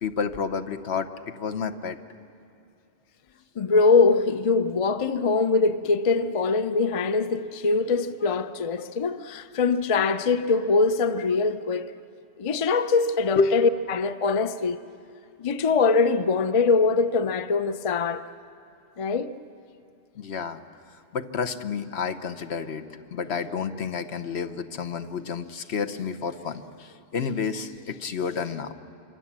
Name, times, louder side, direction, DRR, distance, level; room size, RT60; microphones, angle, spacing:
voice 1, 0.0-2.0 13.4-13.5 20.2-20.6 20.9-22.8 23.1-28.7, left 5 dB, 70° left, 1.2 m, -30 dB
voice 2, 3.6-11.9 12.4-14.8 15.4-18.3 19.0-19.4, left 4 dB, 35° left, 0.6 m, -23 dB
26.0 x 25.5 x 7.4 m
omnidirectional pair, 1.2 m